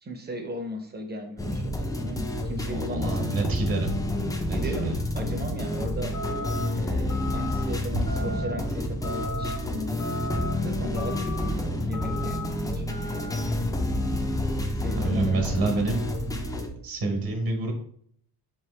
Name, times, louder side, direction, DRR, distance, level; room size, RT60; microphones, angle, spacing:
voice 1, 0.0-3.3 4.5-6.1 6.8-10.1 10.6-13.0 14.7-15.5, left 1 dB, 25° right, 4 dB, 0.7 m, -36 dB
sound 1, 1.4-16.7, left 1 dB, 10° left, 0.4 m, -29 dB
voice 2, 2.7-3.9 4.4-4.9 15.0-16.0 16.8-17.7, right 3 dB, 60° right, 3 dB, 1.3 m, -27 dB
sound 2, 6.1-6.7 7.1-7.6 8.1-8.6 9.0-9.6 10.0-10.5 11.0-11.5 11.9-12.5 12.9-13.4, left 2 dB, 50° left, 0.8 m, -36 dB
4.3 x 3.2 x 3.1 m, 0.63 s
cardioid pair, 125°, 40 cm